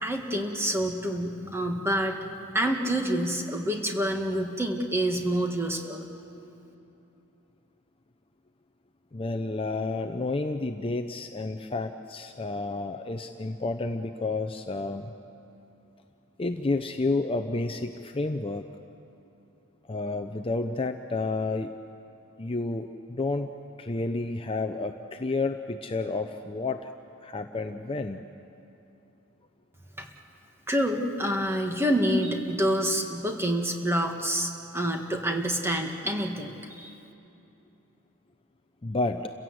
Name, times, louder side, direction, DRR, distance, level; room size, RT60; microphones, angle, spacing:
voice 1, 0.0-6.1 30.0-30.1 30.7-37.0, equal, 10° right, 2 dB, 1.7 m, -27 dB
voice 2, 9.1-15.1 16.4-18.7 19.9-21.7 22.4-23.5 23.8-26.9 27.2-28.2 38.8-39.3, left 3 dB, 25° left, 7 dB, 0.6 m, -30 dB
30.0 x 16.5 x 7.9 m, 2.8 s
head